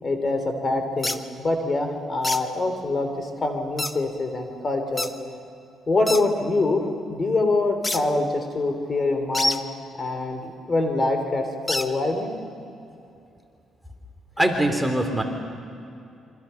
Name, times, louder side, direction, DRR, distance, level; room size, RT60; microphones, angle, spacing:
voice 1, 0.0-5.1 5.9-9.6 10.0-12.3, left 2 dB, 35° left, 6 dB, 3.6 m, -25 dB
sound 1, 1.0-1.2 2.2-2.4 3.8-3.9 5.0-5.1 6.1-6.2 7.8-8.0 9.3-9.6 11.7-11.9, left 2 dB, 20° left, 1.2 m, -26 dB
voice 2, 14.4-15.2, right 1 dB, 5° right, 3 dB, 3.1 m, -22 dB
27.5 x 25.0 x 5.9 m, 2.6 s
cardioid pair, 90°, 0 cm